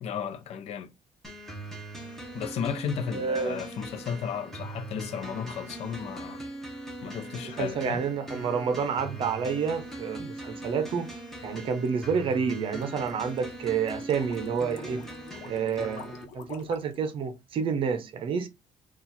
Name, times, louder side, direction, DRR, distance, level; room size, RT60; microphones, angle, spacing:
voice 1, 0.0-0.9 2.3-6.4 7.0-8.0, left 7 dB, 65° left, 0.6 m, -34 dB
sound 1, 1.2-16.2, right 1 dB, 5° left, 0.9 m, -41 dB
voice 2, 3.1-3.6 7.4-11.1 11.4-15.1 15.4-16.1 16.3-18.5, right 6 dB, 50° right, 0.7 m, -29 dB
sound 2, 11.0-17.0, left 5 dB, 85° left, 0.9 m, -48 dB
4.4 x 2.4 x 4.0 m
cardioid pair, 175°, 12 cm